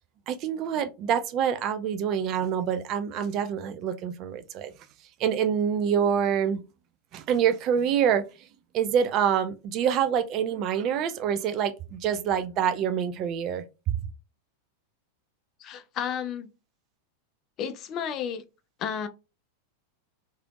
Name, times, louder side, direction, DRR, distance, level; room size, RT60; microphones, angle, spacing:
voice 1, 0.3-4.7 5.2-6.6 7.1-8.2 8.7-13.6, right 8 dB, 35° right, 0.4 m, -26 dB
voice 2, 15.6-16.5 17.6-18.4 18.8-19.1, left 8 dB, 35° left, 0.5 m, -32 dB
3.3 x 3.0 x 2.3 m
figure-of-eight pair, 90°, 0 cm